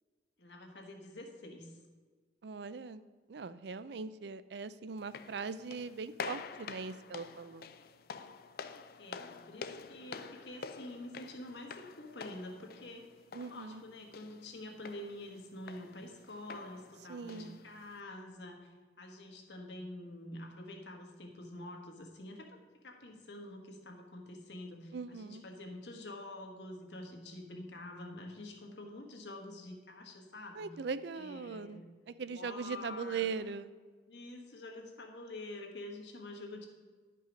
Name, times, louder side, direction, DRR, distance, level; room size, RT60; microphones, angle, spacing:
voice 1, 0.4-1.8 9.0-13.1 13.5-22.6 22.8-30.7 31.1-31.9 32.3-33.3 34.1-36.7, left 1 dB, 80° left, 2 dB, 1.4 m, -47 dB
voice 2, 2.4-3.0 3.3-7.6 13.3-13.8 17.1-17.6 24.9-25.4 30.5-33.7, right 5 dB, 70° right, 14 dB, 0.4 m, -40 dB
sound 1, 5.0-18.0, left 5 dB, 55° left, 0.5 m, -48 dB
10.5 x 5.4 x 5.1 m, 1.4 s
head